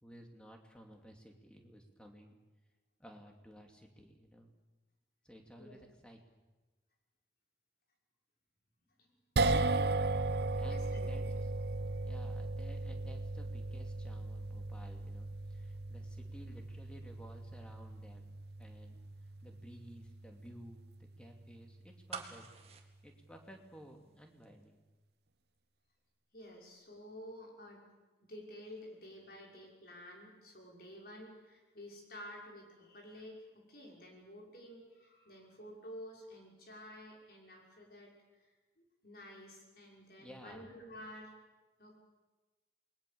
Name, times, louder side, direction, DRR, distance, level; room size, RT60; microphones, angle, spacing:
voice 1, 0.0-2.4 3.0-4.5 5.2-6.2 10.6-11.2 12.0-18.3 18.6-19.0 19.4-20.9 21.2-22.4 23.0-24.8 40.2-40.6, equal, 5° left, 2 dB, 2.7 m, -55 dB
sound 1, 9.4-21.7, right 2 dB, 60° right, 0.7 m, -37 dB
voice 2, 10.7-11.3 12.0-12.1 26.3-27.8 28.2-38.5 38.8-41.3 41.8-41.9, equal, 55° left, -1 dB, 6.1 m, -51 dB
sound 2, 22.1-24.1 24.4-24.5, right 5 dB, 35° right, 2.1 m, -47 dB
28.5 x 21.0 x 7.1 m, 1.2 s
head